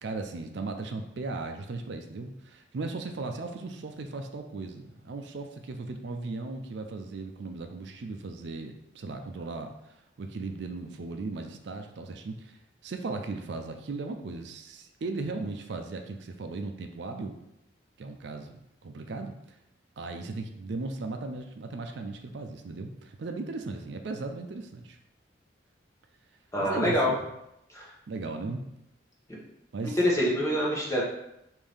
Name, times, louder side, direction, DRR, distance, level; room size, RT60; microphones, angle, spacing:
voice 1, 0.0-17.4 18.0-19.6 20.0-25.0 26.6-27.2 28.1-28.7 29.7-30.0, right 3 dB, 65° right, 5 dB, 0.4 m, -37 dB
voice 2, 26.5-27.1 27.7-27.8 29.3-29.4 29.8-31.0, equal, 15° left, -4 dB, 0.9 m, -26 dB
5.4 x 2.6 x 3.4 m, 0.83 s
head